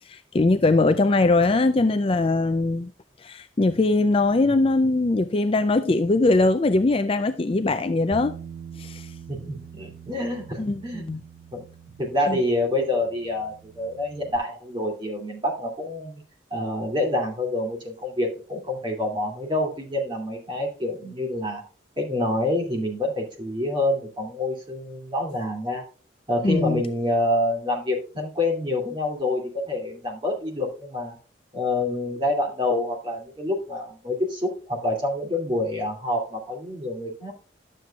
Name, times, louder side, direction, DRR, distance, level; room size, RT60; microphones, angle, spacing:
voice 1, 0.1-2.9 3.2-8.3 8.8-9.1 10.6-11.2 12.3-12.4 26.4-26.8, left 2 dB, 30° left, 0.4 m, -21 dB
Bass guitar, 8.1-14.4, right 7 dB, 55° right, 0.8 m, -44 dB
voice 2, 9.3-11.0 11.5-11.7 12.0-16.2 16.5-21.6 22.0-25.8 26.3-31.2 31.5-37.3, left 1 dB, 25° right, 2.5 m, -27 dB
11.5 x 7.6 x 2.4 m
head